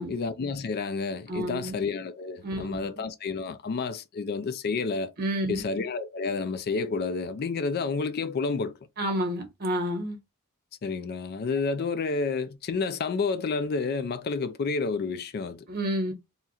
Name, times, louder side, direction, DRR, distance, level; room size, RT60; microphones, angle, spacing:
voice 1, 0.1-5.1 5.5-8.7 10.8-15.7, left 4 dB, 45° left, 0.4 m, -30 dB
voice 2, 1.3-1.8 2.4-2.8 5.2-5.6 9.0-10.2 15.7-16.1, equal, 45° right, 1.1 m, -29 dB
2.8 x 2.4 x 4.1 m
head